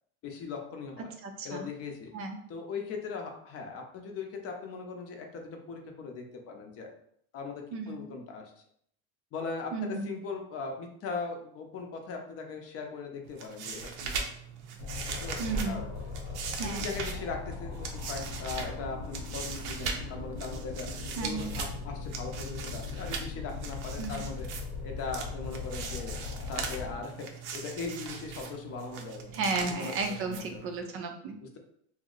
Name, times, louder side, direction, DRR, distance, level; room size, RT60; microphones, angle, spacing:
voice 1, 0.2-1.1 1.4-2.1 2.5-6.9 7.3-8.4 9.3-14.3 15.1-15.9 16.6-20.9 21.2-24.5 24.8-27.1 27.5-29.3 29.6-29.9 30.3-30.7 31.4-31.6, left 4 dB, 45° left, 2 dB, 0.6 m, -39 dB
voice 2, 1.2-1.7 2.1-2.4 7.7-8.0 9.7-10.1 15.4-15.8 16.6-16.9 21.2-21.5 24.0-24.2 29.3-31.4, right 3 dB, 40° right, 4 dB, 0.4 m, -33 dB
sound 1, 13.2-30.8, right 5 dB, 80° right, 0.6 m, -40 dB
sound 2, 14.8-27.0, left 5 dB, 65° left, 0.8 m, -39 dB
2.7 x 2.0 x 3.8 m, 0.66 s
supercardioid pair, 120°, 34 cm